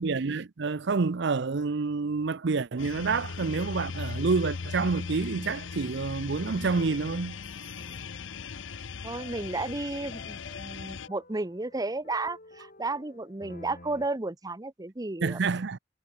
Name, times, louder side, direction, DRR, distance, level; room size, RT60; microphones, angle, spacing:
voice 1, 0.0-7.4 15.2-15.8, right 4 dB, 65° right, 0.6 m, -28 dB
sound 1, 2.8-11.1, left 5 dB, 85° left, 0.7 m, -38 dB
sound 2, 7.8-14.1, left 2 dB, 45° left, 6.9 m, -52 dB
voice 2, 9.0-15.4, right 2 dB, 20° right, 0.9 m, -33 dB
head